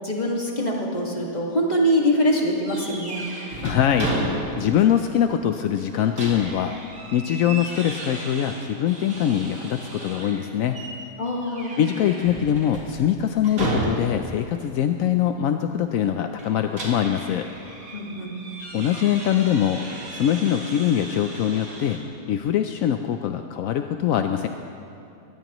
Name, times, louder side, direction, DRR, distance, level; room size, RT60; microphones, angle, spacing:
voice 1, 0.0-3.3 11.2-11.8 17.9-18.6, equal, 30° left, -2 dB, 2.1 m, -24 dB
sound 1, 2.7-4.8 5.1-5.2 5.8-10.4 10.7-11.0 11.4-14.3 16.4-22.0, right 2 dB, 85° right, 3.0 m, -34 dB
voice 2, 3.6-6.7 7.1-10.8 11.8-17.4 18.7-19.8 20.1-22.0 22.3-24.5, left 10 dB, 75° left, 7 dB, 1.0 m, -23 dB
23.5 x 18.5 x 3.0 m, 2.7 s
omnidirectional pair, 1.4 m